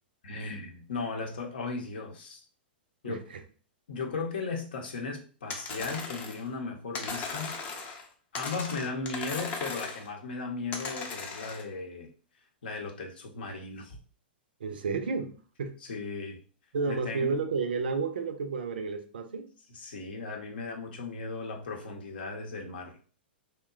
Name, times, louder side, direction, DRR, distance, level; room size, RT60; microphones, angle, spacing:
voice 1, 0.2-2.4 3.0-3.3 3.9-7.6 8.3-12.1 12.6-14.0 15.9-16.4 16.9-17.3 19.7-23.0, left 4 dB, 65° left, 0.7 m, -36 dB
voice 2, 3.0-3.4 14.6-15.3 15.6-15.8 16.7-19.5, right 4 dB, 70° right, 0.4 m, -31 dB
sound 1, 5.5-6.5 6.9-8.1 8.3-10.1 10.7-11.6, left 4 dB, 25° left, 0.6 m, -37 dB
2.8 x 2.2 x 2.3 m
figure-of-eight pair, 105°, 6 cm